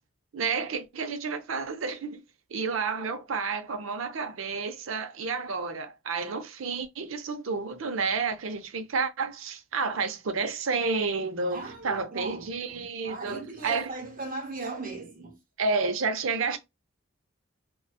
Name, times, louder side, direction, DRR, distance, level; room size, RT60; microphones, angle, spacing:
voice 1, 0.3-2.2 2.5-13.9 15.6-16.6, right 4 dB, 85° right, 0.6 m, -30 dB
voice 2, 11.5-15.4, right 3 dB, 45° right, 1.0 m, -38 dB
2.6 x 2.2 x 2.3 m
head